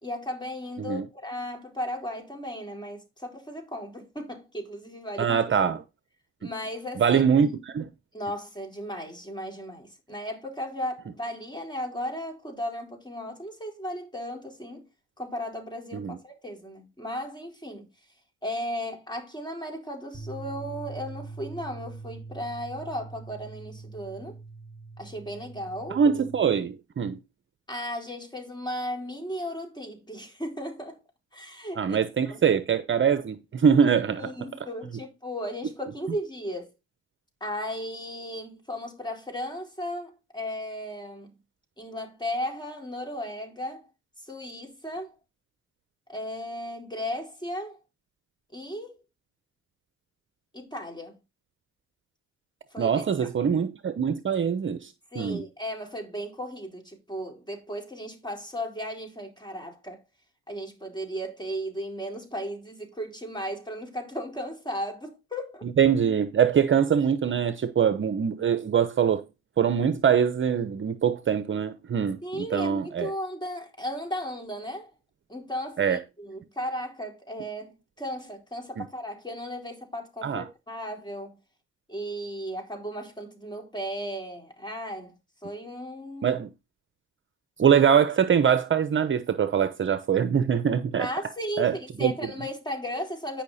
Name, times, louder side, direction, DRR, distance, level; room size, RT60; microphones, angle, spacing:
voice 1, 0.0-5.4 6.4-7.2 8.1-14.9 15.2-17.9 18.4-24.4 25.0-26.0 27.7-31.0 31.3-32.0 32.3-32.4 34.2-36.7 37.4-41.3 41.8-43.9 44.2-45.1 46.1-47.8 48.5-49.0 50.5-51.2 52.7-53.0 55.1-60.0 60.5-65.6 72.2-74.9 75.3-81.4 81.9-85.1 85.4-86.4 91.0-93.4, equal, 15° left, 4.2 m, -35 dB
voice 2, 5.2-5.8 6.4-6.5 7.0-7.9 15.9-16.2 25.9-27.2 31.8-34.3 52.8-54.9 55.2-55.4 65.8-69.2 69.6-72.2 72.5-73.1 75.8-76.0 78.8-78.9 80.2-80.4 86.2-86.5 87.6-91.1 91.6-91.7 92.0-92.1, right 7 dB, 40° right, 0.9 m, -23 dB
sound 1, 20.1-26.4, right 3 dB, 10° right, 4.7 m, -42 dB
10.5 x 5.8 x 4.2 m
cardioid pair, 90°, 30 cm